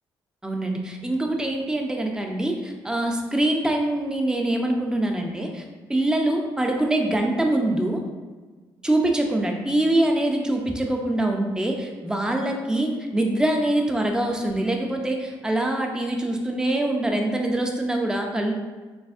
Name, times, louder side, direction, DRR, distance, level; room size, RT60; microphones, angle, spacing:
voice 1, 0.4-5.6 5.9-8.0 8.8-18.5, right 1 dB, 5° right, 2 dB, 0.6 m, -24 dB
4.7 x 3.4 x 2.5 m, 1.3 s
supercardioid pair, 60°, 9 cm